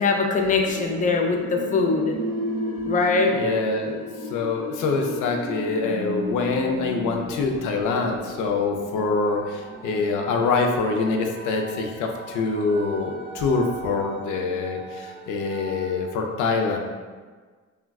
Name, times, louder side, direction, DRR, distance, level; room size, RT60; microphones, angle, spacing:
voice 1, 0.0-2.2 2.9-3.3, left 4 dB, 25° left, 2 dB, 0.4 m, -22 dB
sound 1, 0.6-16.1, equal, 70° right, 0.7 m, -35 dB
voice 2, 3.3-4.0 4.3-16.8, left 4 dB, 80° left, 3 dB, 0.5 m, -25 dB
3.5 x 2.1 x 2.3 m, 1.5 s
cardioid pair, 90°, 30 cm